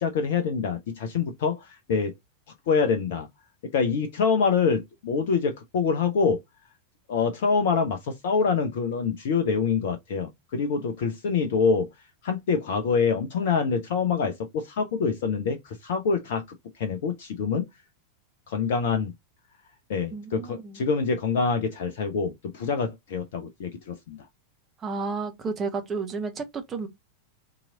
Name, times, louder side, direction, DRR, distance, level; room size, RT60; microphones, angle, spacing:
voice 1, 0.0-2.1 2.7-3.3 3.7-6.4 7.1-11.9 12.2-16.4 16.8-17.6 18.5-19.1 19.9-24.2, left 5 dB, 55° left, 0.7 m, -25 dB
voice 2, 20.1-20.8 24.8-26.9, right 4 dB, 25° right, 1.1 m, -32 dB
3.8 x 3.0 x 3.7 m
figure-of-eight pair, 90°, 0 cm